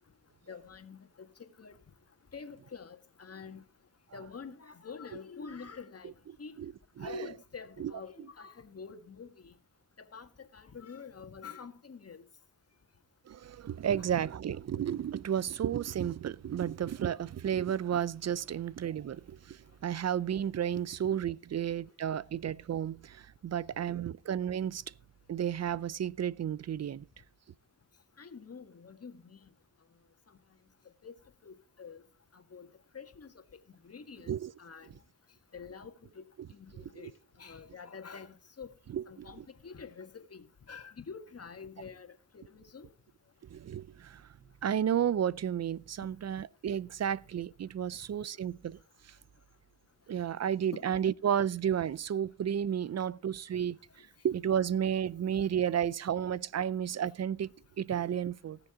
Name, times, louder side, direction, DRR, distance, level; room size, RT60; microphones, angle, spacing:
voice 1, 0.5-1.3 1.6-1.7 2.3-3.6 4.1-6.1 6.4-6.6 7.0-9.5 10.1-12.2 14.0-14.1 28.2-29.4 31.0-31.1 31.4-32.0 32.3-32.7 32.9-33.3 33.8-34.9 35.5-36.2 36.5-37.1 37.4-38.7 39.1-42.9 50.7-50.8, left 5 dB, 45° left, 1.8 m, -47 dB
voice 2, 7.0-7.3 7.8-7.9 13.3-24.8 25.3-27.0 34.3-34.5 37.0-37.1 38.9-39.3 43.5-44.2 44.6-48.8 50.1-53.8 54.2-58.6, right 9 dB, 50° right, 0.6 m, -32 dB
18.5 x 6.9 x 3.7 m
supercardioid pair, 50°, 35 cm